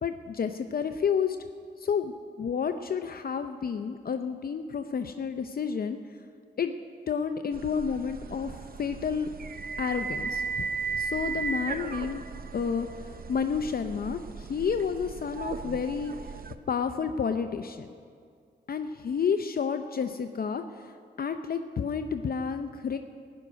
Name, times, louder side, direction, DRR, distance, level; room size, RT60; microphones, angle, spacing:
voice 1, 0.0-1.4 1.8-2.1 2.4-6.0 6.6-6.7 7.1-9.3 9.8-10.4 10.9-12.2 12.5-12.9 13.3-16.1 16.7-17.9 18.7-20.6 21.2-23.0, left 6 dB, 55° left, 8 dB, 0.6 m, -30 dB
sound 1, 7.5-16.5, right 5 dB, 55° right, 0.7 m, -36 dB
15.0 x 6.3 x 9.7 m, 2.2 s
cardioid pair, 70°, 18 cm